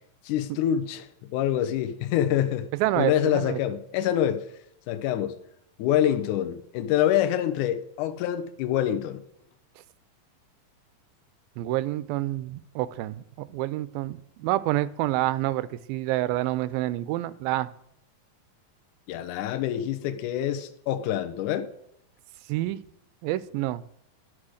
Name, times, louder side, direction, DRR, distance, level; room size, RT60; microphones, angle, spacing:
voice 1, 0.3-2.7 3.0-4.4 4.9-5.3 5.8-9.2 19.1-21.7, left 11 dB, 75° left, 9 dB, 2.0 m, -26 dB
voice 2, 2.8-3.6 11.6-17.7 22.5-22.8 23.2-23.8, right 16 dB, 85° right, 16 dB, 2.4 m, -28 dB
9.9 x 6.2 x 6.4 m, 0.74 s
omnidirectional pair, 4.1 m